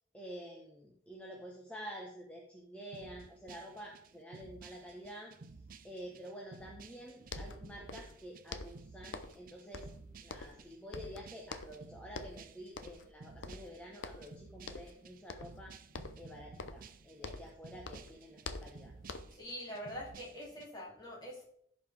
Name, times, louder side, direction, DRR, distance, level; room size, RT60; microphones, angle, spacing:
voice 1, 0.1-5.3 5.8-9.9 10.2-15.7 16.2-18.9, equal, 5° left, -1 dB, 1.1 m, -49 dB
sound 1, 2.9-20.7, right 4 dB, 45° right, 0.5 m, -55 dB
sound 2, 7.0-7.1 7.3-8.2 8.5-9.5 9.7-10.7 10.9-11.8 12.1-12.4 12.8-13.1 13.4-14.3 14.7-15.0 15.3-15.6 15.9-17.6 17.8-19.5, left 3 dB, 85° left, 0.7 m, -46 dB
voice 2, 19.3-21.5, equal, 20° left, -4 dB, 2.8 m, -44 dB
15.5 x 5.3 x 3.5 m, 0.69 s
head